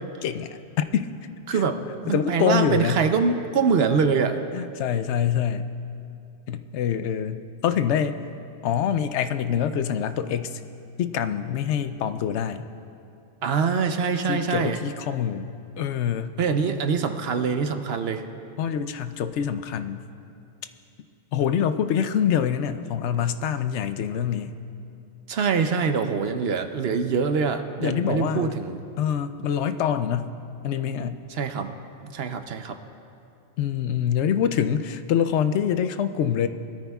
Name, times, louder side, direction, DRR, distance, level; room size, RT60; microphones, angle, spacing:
voice 1, 0.2-1.1 1.5-1.6 2.1-3.0 4.5-5.7 6.5-8.2 8.6-10.6 11.0-12.7 14.3-16.4 18.6-20.0 21.3-24.5 27.8-28.6 29.0-30.4 30.6-31.2 33.6-36.5, left 8 dB, 80° left, 11 dB, 0.9 m, -25 dB
voice 2, 1.5-1.8 2.0-4.4 13.4-14.8 16.4-18.2 25.3-28.8 31.3-31.7 32.1-32.8, right 5 dB, 65° right, 7 dB, 0.9 m, -24 dB
20.5 x 13.5 x 2.3 m, 2.6 s
omnidirectional pair, 1.2 m